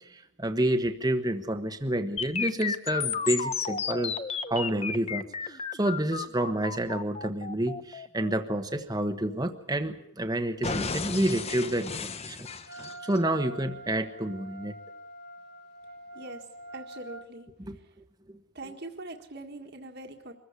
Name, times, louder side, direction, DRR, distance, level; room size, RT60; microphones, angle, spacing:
voice 1, 0.1-4.2 4.5-14.7 17.6-17.8, right 1 dB, 20° right, 7 dB, 1.2 m, -29 dB
sound 1, 2.2-10.1 10.6-13.2, left 5 dB, 30° left, 0.9 m, -34 dB
Wind instrument woodwind instrument, 12.6-17.3, right 1 dB, 50° left, 2.4 m, -45 dB
voice 2, 16.7-17.9 18.5-20.3, right 2 dB, 50° right, 3 dB, 1.8 m, -43 dB
24.5 x 15.0 x 9.7 m, 0.76 s
head